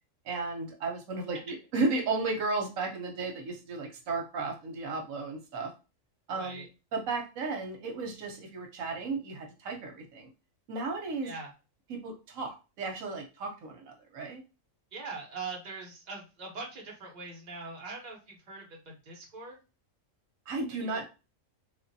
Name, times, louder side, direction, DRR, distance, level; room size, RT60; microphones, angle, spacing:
voice 1, 0.3-5.7 6.3-6.7 6.9-10.3 10.7-11.3 11.9-14.4 20.5-21.0, right 3 dB, 85° right, 3 dB, 1.1 m, -34 dB
voice 2, 6.3-6.7 11.2-11.5 14.9-19.6 20.8-21.0, right 4 dB, 35° right, 0 dB, 1.0 m, -42 dB
3.2 x 2.5 x 2.6 m, 0.30 s
omnidirectional pair, 1.4 m